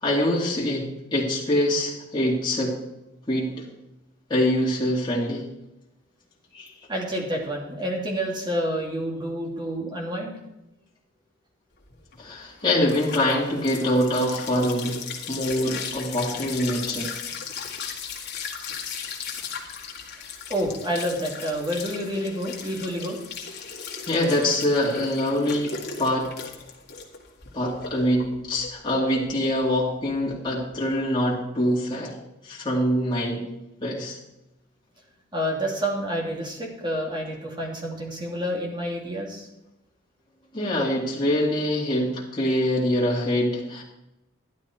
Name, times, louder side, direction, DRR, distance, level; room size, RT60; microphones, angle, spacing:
voice 1, 0.0-2.8 3.3-3.6 4.3-5.5 6.5-6.7 12.2-17.1 24.1-26.3 27.5-32.1 32.4-33.5 33.8-34.2 40.5-43.8, left 1 dB, 25° left, -5 dB, 2.5 m, -24 dB
voice 2, 6.9-10.3 20.5-23.2 35.3-39.5, equal, 25° right, -1 dB, 2.7 m, -28 dB
sound 1, 11.9-30.9, left 6 dB, 55° left, 2.0 m, -37 dB
11.5 x 11.5 x 4.5 m, 0.91 s
head